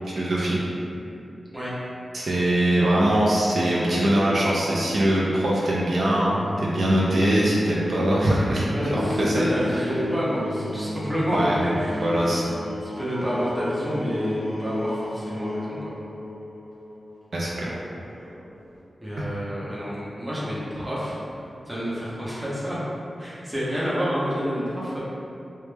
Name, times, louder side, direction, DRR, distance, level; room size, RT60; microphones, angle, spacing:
voice 1, 0.1-0.6 2.1-8.7 9.0-9.8 11.3-11.6 12.0-12.4 17.3-17.5, right 1 dB, 65° right, -5 dB, 0.4 m, -22 dB
sound 1, 3.5-18.8, left 1 dB, 45° right, 1.0 m, -33 dB
voice 2, 8.7-12.0 12.8-15.8 19.0-21.2 21.7-22.8 23.2-25.0, equal, 10° right, -9 dB, 0.6 m, -28 dB
2.1 x 2.1 x 3.1 m, 2.7 s
wide cardioid pair, 110°, 0 cm